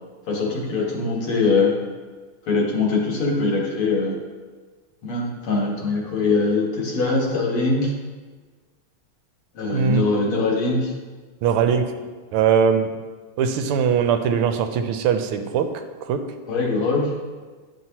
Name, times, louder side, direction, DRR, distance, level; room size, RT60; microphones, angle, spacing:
voice 1, 0.3-1.8 2.5-4.2 5.0-7.9 9.5-10.9 16.5-17.1, left 3 dB, 75° left, -2 dB, 2.3 m, -22 dB
voice 2, 9.7-10.0 11.4-11.8 12.3-12.9 13.4-15.7 16.1-16.2, right 7 dB, 85° right, 7 dB, 1.5 m, -20 dB
11.0 x 5.9 x 2.9 m, 1.4 s
omnidirectional pair, 2.4 m